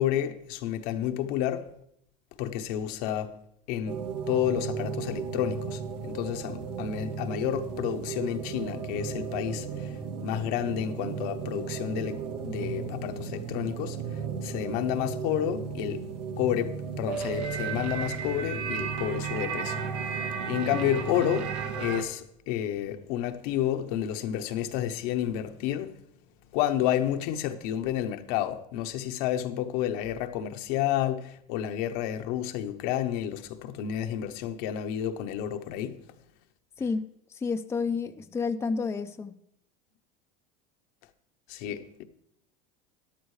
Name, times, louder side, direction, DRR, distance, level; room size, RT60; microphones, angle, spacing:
voice 1, 0.0-1.7 2.4-3.4 3.7-16.1 16.4-20.1 20.5-25.9 26.5-36.0 41.5-42.0, left 11 dB, 70° left, 1.0 m, -30 dB
sound 1, 3.9-22.0, right 6 dB, 85° right, 1.5 m, -34 dB
voice 2, 37.3-39.3, left 4 dB, 10° left, 0.4 m, -30 dB
13.0 x 11.0 x 3.2 m
supercardioid pair, 115°, 21 cm